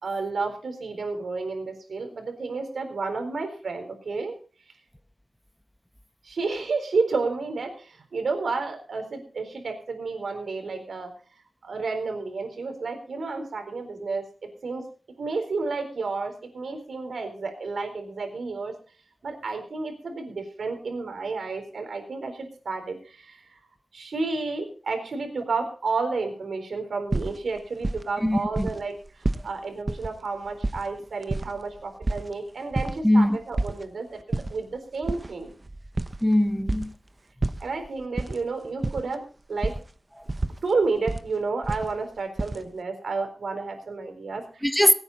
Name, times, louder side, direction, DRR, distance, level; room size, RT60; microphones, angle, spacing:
voice 1, 0.0-4.3 6.2-11.1 11.6-14.2 14.6-14.8 15.2-18.7 19.2-23.6 23.9-35.5 37.6-39.7 40.6-44.7, right 4 dB, 85° right, 4.0 m, -31 dB
sound 1, 27.1-28.2 28.5-28.8 29.0-29.5 29.9-30.1 30.5-32.3 32.7-33.0 33.3-33.8 34.2-34.5 35.0-36.9 37.4-38.4 38.6-39.1 39.6-39.8 40.3-41.2 41.6-42.6, right 2 dB, 30° right, 0.9 m, -29 dB
voice 2, 28.2-28.7 33.0-33.4 36.2-36.9 44.6-44.9, left 1 dB, 5° left, 1.0 m, -21 dB
22.5 x 9.2 x 4.2 m
wide cardioid pair, 105°, 0 cm